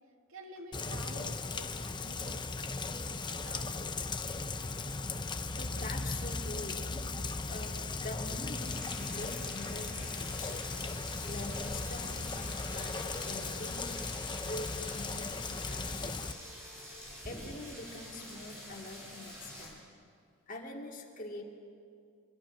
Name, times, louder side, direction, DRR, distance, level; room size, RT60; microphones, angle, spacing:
voice 1, 0.3-4.0, right 1 dB, 70° right, 3 dB, 2.3 m, -50 dB
Rain, 0.7-16.3, left 3 dB, 20° left, 0.7 m, -37 dB
voice 2, 5.6-10.6 11.3-13.9 14.4-16.4 17.2-19.8 20.5-21.4, left 2 dB, 40° left, 1 dB, 2.5 m, -45 dB
sound 1, 8.6-19.7, equal, 10° right, 6.4 m, -47 dB
26.5 x 15.0 x 9.1 m, 2.3 s
head